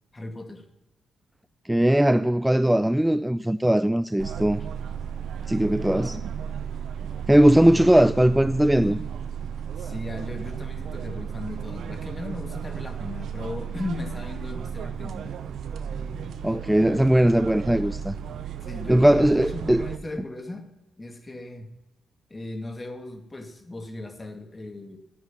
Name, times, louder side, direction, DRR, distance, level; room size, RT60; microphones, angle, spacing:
voice 1, 0.1-0.6 5.9-6.3 8.8-9.0 9.8-15.4 18.6-20.7 21.0-21.7 22.3-25.0, left 2 dB, 25° left, 2.2 m, -37 dB
voice 2, 1.7-4.6 5.5-6.2 7.3-9.0 16.4-18.1 18.9-19.8, right 1 dB, 5° right, 0.5 m, -19 dB
sound 1, 4.2-20.0, right 7 dB, 65° right, 0.8 m, -34 dB
13.0 x 10.5 x 5.7 m
hypercardioid pair, 40°, 0 cm